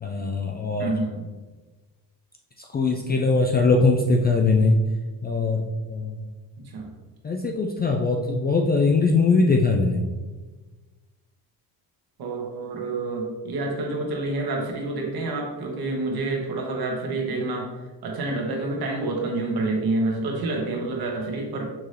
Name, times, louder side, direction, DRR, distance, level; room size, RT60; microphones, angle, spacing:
voice 1, 0.0-0.9 2.7-4.8 5.2-6.2 7.2-10.1, left 3 dB, 25° left, 1 dB, 0.3 m, -21 dB
voice 2, 0.8-1.3 6.6-6.9 12.2-17.7 18.0-21.7, right 2 dB, 60° right, 0 dB, 1.2 m, -28 dB
5.9 x 2.7 x 3.2 m, 1.3 s
cardioid pair, 115°, 43 cm